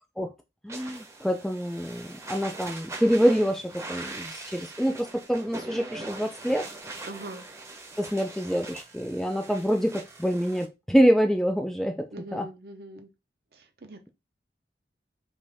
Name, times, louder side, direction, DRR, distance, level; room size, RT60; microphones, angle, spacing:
voice 1, 0.6-6.7 8.0-12.5, equal, ahead, 0.4 m, -26 dB
sound 1, 0.7-10.6, right 2 dB, 15° right, 0.8 m, -42 dB
voice 2, 7.0-7.5 12.1-13.1 13.5-14.1, right 1 dB, 60° right, 0.7 m, -42 dB
5.3 x 2.5 x 3.4 m
head